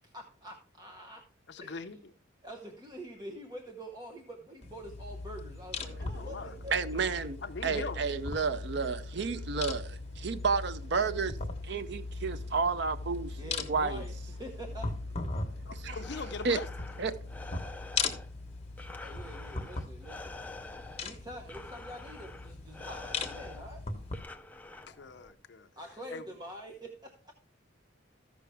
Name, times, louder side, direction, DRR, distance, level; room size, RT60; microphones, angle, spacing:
voice 1, 0.0-1.3 1.6-1.9 2.4-7.3 13.4-14.9 19.0-20.4 21.0-23.8 25.8-27.3, equal, 20° right, 0.9 m, -46 dB
voice 2, 1.5-2.0 6.0-6.6 7.4-8.0 15.7-16.7 24.9-25.7 26.1-26.2, left 4 dB, 60° left, 0.6 m, -41 dB
sound 1, 4.6-24.2, left 3 dB, 30° left, 1.2 m, -39 dB
voice 3, 6.7-7.4 7.6-11.4 11.6-13.4 13.7-14.0 15.7-16.0 16.4-16.6 17.0-17.1, right 5 dB, 60° right, 0.5 m, -31 dB
Breathing, 15.7-25.3, left 3 dB, 10° left, 0.4 m, -47 dB
14.0 x 6.1 x 3.4 m
head